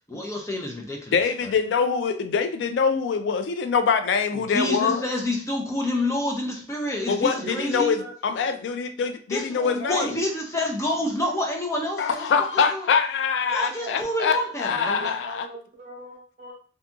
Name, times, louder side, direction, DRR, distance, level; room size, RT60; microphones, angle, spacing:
voice 1, 0.1-1.5 4.5-7.9 9.3-12.3 12.5-12.9 13.5-15.1, left 1 dB, 15° left, 1 dB, 0.5 m, -28 dB
voice 2, 1.1-5.0 7.1-10.2 12.0-15.4, left 6 dB, 90° left, 9 dB, 0.3 m, -24 dB
voice 3, 7.0-8.1 9.3-10.2 13.6-14.1 14.8-16.5, right 2 dB, 45° right, 0 dB, 0.7 m, -40 dB
2.7 x 2.5 x 2.3 m, 0.42 s
head